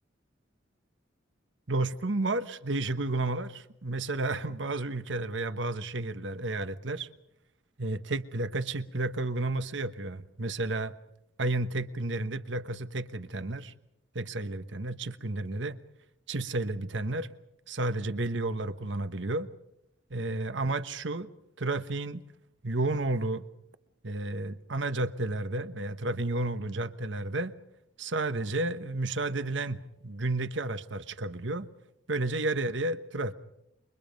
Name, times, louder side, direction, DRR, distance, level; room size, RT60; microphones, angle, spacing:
voice 1, 1.7-7.1 7.8-11.0 11.4-13.7 14.1-15.8 16.3-17.3 17.7-19.5 20.1-21.3 21.6-22.2 22.6-23.4 24.0-27.5 28.0-31.7 32.1-33.3, right 2 dB, 65° right, 1.2 m, -31 dB
28.5 x 24.0 x 5.3 m
head